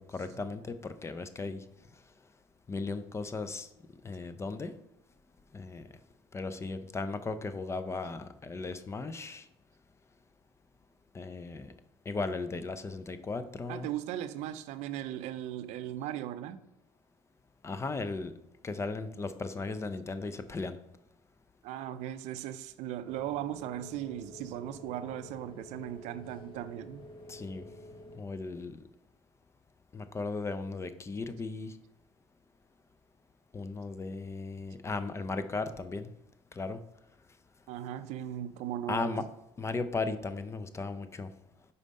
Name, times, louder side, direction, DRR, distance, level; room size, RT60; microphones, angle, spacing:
voice 1, 0.0-1.6 2.7-3.7 4.0-4.7 5.5-5.9 6.3-9.5 11.1-11.7 12.1-13.9 17.6-18.3 18.6-20.8 27.3-27.7 28.1-28.8 29.9-31.8 33.5-36.1 36.5-36.8 38.9-39.3 39.6-41.3, left 3 dB, 25° left, 0.5 m, -36 dB
voice 2, 13.7-16.6 21.6-27.1 37.7-39.3, right 12 dB, 70° right, 0.4 m, -38 dB
sound 1, 23.0-28.2, left 1 dB, 40° left, 1.1 m, -50 dB
5.1 x 4.2 x 5.3 m
supercardioid pair, 85°, 12 cm